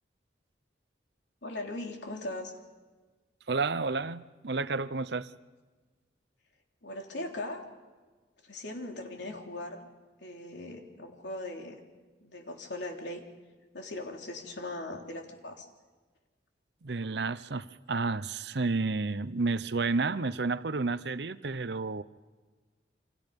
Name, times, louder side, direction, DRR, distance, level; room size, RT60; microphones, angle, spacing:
voice 1, 1.4-2.5 6.8-7.6 8.4-9.9 10.2-11.8 12.2-13.2 13.7-15.6, left 2 dB, 80° left, 2 dB, 3.3 m, -39 dB
voice 2, 3.5-5.3 16.8-22.0, right 3 dB, 70° right, 15 dB, 0.8 m, -31 dB
29.0 x 26.0 x 5.4 m, 1.3 s
head